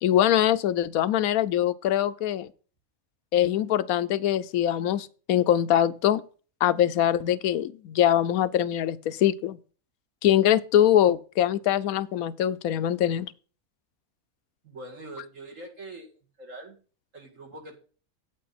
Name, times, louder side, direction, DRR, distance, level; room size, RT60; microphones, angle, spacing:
voice 1, 0.0-2.5 3.3-6.2 6.6-9.6 10.2-13.3, left 11 dB, 80° left, 1.1 m, -23 dB
voice 2, 14.6-16.1 16.4-16.8 17.1-17.8, right 2 dB, 60° right, 2.6 m, -43 dB
9.0 x 8.6 x 4.1 m
omnidirectional pair, 1.5 m